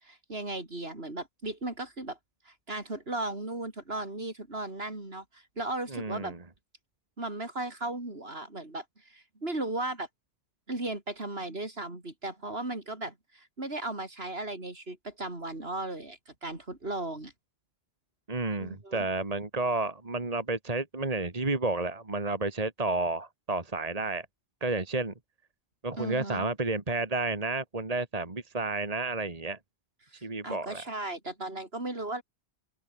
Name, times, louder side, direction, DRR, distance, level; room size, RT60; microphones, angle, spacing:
voice 1, 0.0-2.2 2.4-6.3 7.2-10.1 10.7-17.3 18.6-19.1 26.0-26.5 30.1-32.2, right 2 dB, 65° right, 4.8 m, -36 dB
voice 2, 5.9-6.4 18.3-24.3 24.6-25.1 25.8-29.6 30.2-30.8, right 3 dB, 35° right, 2.2 m, -31 dB
open air
omnidirectional pair, 1.1 m